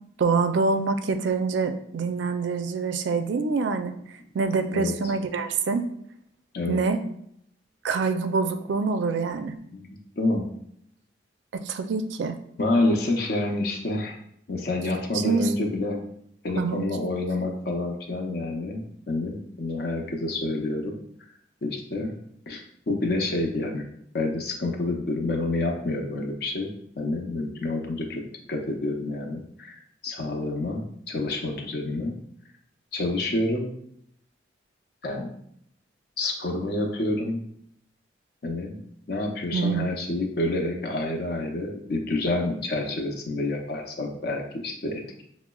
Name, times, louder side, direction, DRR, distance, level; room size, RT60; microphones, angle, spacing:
voice 1, 0.2-3.9 4.3-5.9 6.7-7.0 7.8-9.5 11.7-12.4 15.2-15.5 16.6-16.8 39.5-39.9, right 4 dB, 75° right, 8 dB, 0.3 m, -25 dB
voice 2, 9.7-10.5 12.6-14.2 14.5-16.1 16.4-20.9 21.6-22.1 22.5-23.9 24.1-26.7 27.0-28.2 28.5-32.1 32.9-33.7 35.0-35.3 36.2-37.4 38.4-38.8 39.1-45.2, left 2 dB, 55° left, 2 dB, 0.6 m, -28 dB
5.9 x 2.0 x 2.2 m, 0.71 s
head